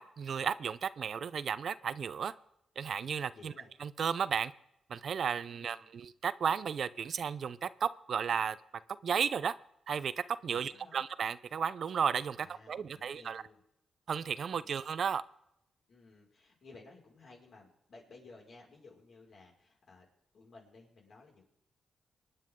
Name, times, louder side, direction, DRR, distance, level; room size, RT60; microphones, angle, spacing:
voice 1, 0.0-2.3 2.8-3.5 3.8-4.5 4.9-8.6 9.0-9.5 9.9-10.1 10.4-13.4 14.1-15.2, right 7 dB, 60° right, 16 dB, 0.5 m, -34 dB
voice 2, 3.3-3.7 5.5-5.9 10.5-11.0 12.3-13.6 14.5-14.8 15.9-20.1 20.3-21.4, left 3 dB, 65° left, -2 dB, 5.4 m, -56 dB
24.5 x 9.8 x 3.8 m, 0.82 s
cardioid pair, 75°, 0 cm